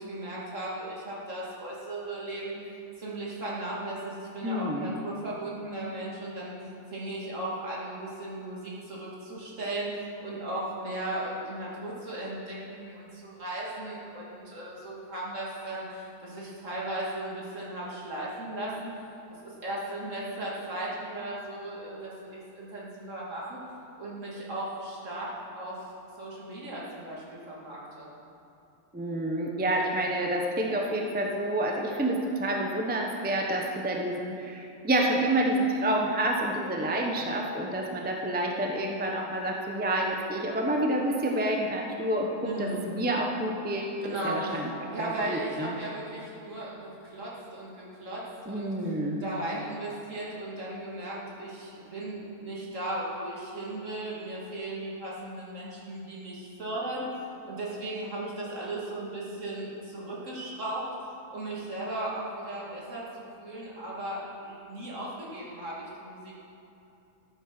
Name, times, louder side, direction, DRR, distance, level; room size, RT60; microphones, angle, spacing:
voice 1, 0.0-6.5 6.9-18.9 19.4-23.6 24.0-25.9 26.2-28.1 42.4-42.8 44.0-44.7 44.9-48.7 49.2-57.1 57.5-60.8 61.3-66.3, right 1 dB, 60° right, -6 dB, 2.8 m, -36 dB
voice 2, 4.4-4.9 28.9-45.7 48.5-49.2, right 1 dB, 10° right, 0 dB, 0.8 m, -29 dB
13.5 x 8.2 x 6.1 m, 2.8 s
omnidirectional pair, 1.5 m